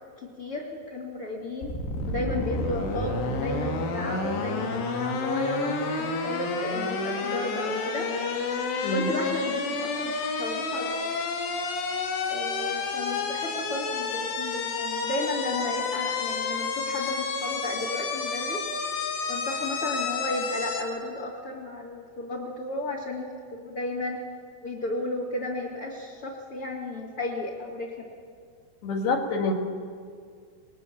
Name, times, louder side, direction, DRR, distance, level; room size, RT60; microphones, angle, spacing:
voice 1, 0.2-1.7 2.1-8.1 8.9-11.1 12.3-18.6 19.3-24.2 24.6-27.9, left 1 dB, 40° left, -2 dB, 2.6 m, -33 dB
sound 1, 1.6-20.8, left 4 dB, 90° left, 4.2 m, -30 dB
voice 2, 8.8-9.1 28.8-29.5, left 2 dB, 70° left, 3 dB, 3.9 m, -26 dB
28.0 x 20.0 x 7.2 m, 2.1 s
omnidirectional pair, 4.8 m